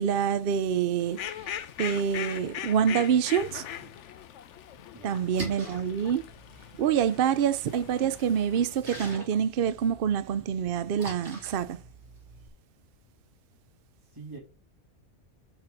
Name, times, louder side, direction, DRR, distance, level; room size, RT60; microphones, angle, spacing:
voice 1, 0.0-3.7 5.0-6.3 6.8-11.8, right 8 dB, 65° right, 0.5 m, -26 dB
Fowl, 1.0-8.8, left 10 dB, 65° left, 0.9 m, -40 dB
voice 2, 4.9-5.6 14.0-14.4, right 3 dB, 15° right, 1.8 m, -46 dB
Splash splatter, 5.1-12.5, right 1 dB, 50° right, 3.3 m, -45 dB
7.1 x 4.9 x 6.1 m
omnidirectional pair, 1.5 m